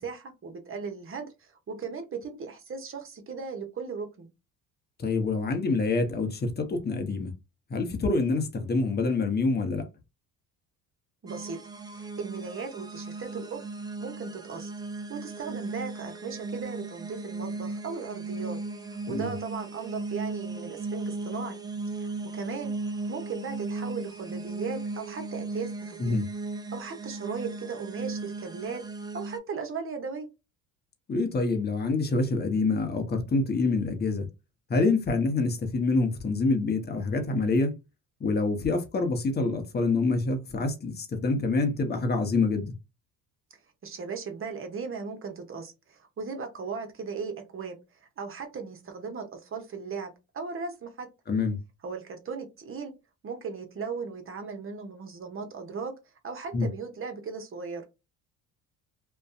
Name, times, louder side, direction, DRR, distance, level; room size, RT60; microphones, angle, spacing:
voice 1, 0.0-4.3 11.2-11.6 11.9-13.6 14.0-14.7 15.1-18.6 18.9-22.7 23.1-26.2 26.7-28.8 29.1-30.3 43.5-47.7 48.2-51.1 51.8-52.9 53.2-55.9 56.2-57.8, right 5 dB, 35° right, 0.9 m, -37 dB
voice 2, 5.0-7.3 7.7-9.8 19.1-19.3 26.0-26.2 31.1-34.3 34.7-37.7 38.2-42.7 51.3-51.6 56.5-56.7, left 3 dB, 25° left, 0.8 m, -26 dB
sound 1, 11.3-29.4, right 3 dB, 10° right, 0.3 m, -36 dB
2.5 x 2.3 x 2.4 m
supercardioid pair, 85°, 39 cm